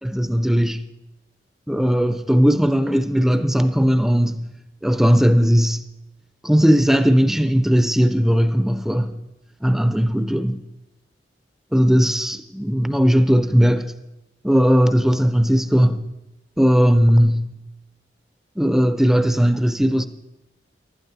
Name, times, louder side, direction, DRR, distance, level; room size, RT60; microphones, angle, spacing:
voice 1, 0.0-0.8 1.7-4.4 4.8-5.8 6.4-9.2 9.6-10.6 11.7-13.9 14.4-16.0 16.6-17.5 18.6-20.1, equal, ahead, 0.4 m, -17 dB
15.0 x 11.5 x 4.1 m
head